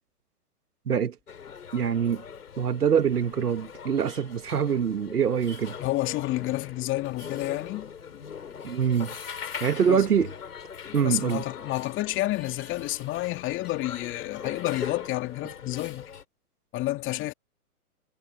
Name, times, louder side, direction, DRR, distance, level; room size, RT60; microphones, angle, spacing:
sound 1, 1.3-16.2, left 7 dB, 80° left, 5.5 m, -41 dB
voice 1, 1.7-2.2 2.6-5.8 8.6-9.2 9.6-10.3 10.9-11.4, right 7 dB, 85° right, 1.6 m, -24 dB
voice 2, 5.8-8.2 9.5-10.1 10.8-16.1 16.7-17.3, left 17 dB, 25° left, 2.4 m, -30 dB
hypercardioid pair, 125°, 45 cm